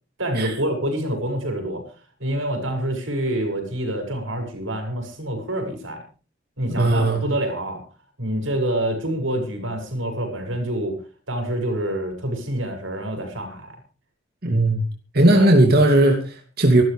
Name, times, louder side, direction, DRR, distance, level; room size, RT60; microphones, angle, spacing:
voice 1, 0.2-1.8 2.2-6.0 6.6-7.8 8.2-11.0 11.3-13.7 15.3-15.5, right 1 dB, 90° right, 4 dB, 6.6 m, -26 dB
voice 2, 6.8-7.2 14.4-14.8 15.1-16.8, right 1 dB, 50° right, 2 dB, 2.8 m, -17 dB
25.5 x 12.5 x 3.5 m, 0.37 s
head